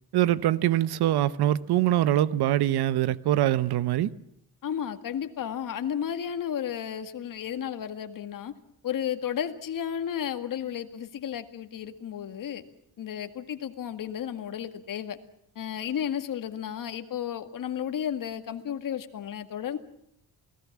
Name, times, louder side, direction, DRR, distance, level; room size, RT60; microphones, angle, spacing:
voice 1, 0.1-4.1, right 13 dB, 90° right, 1.0 m, -23 dB
voice 2, 4.6-8.5 8.8-12.6 13.0-15.2 15.6-19.8, left 9 dB, 55° left, 2.1 m, -33 dB
28.5 x 19.0 x 7.4 m
cardioid pair, 130°, 38 cm